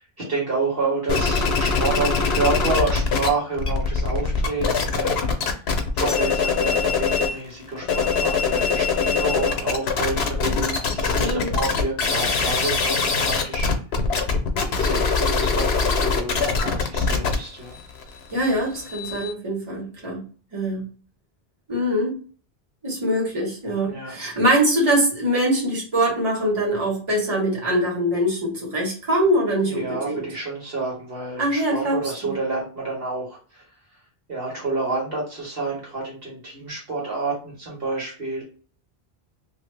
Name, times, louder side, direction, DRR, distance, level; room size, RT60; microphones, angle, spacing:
voice 1, 0.3-5.4 5.9-13.7 14.8-17.7 20.7-20.9 23.8-24.2 29.6-33.6 34.3-38.4, right 3 dB, 65° right, -4 dB, 1.6 m, -29 dB
sound 1, 1.1-3.3 3.5-7.4 7.8-19.3, left 5 dB, 80° left, 0.9 m, -23 dB
voice 2, 11.2-11.5 18.3-20.2 20.5-20.9 21.7-22.1 22.8-30.2 31.4-32.3, right 1 dB, 30° right, -4 dB, 1.4 m, -23 dB
2.7 x 2.7 x 3.2 m, 0.39 s
omnidirectional pair, 1.0 m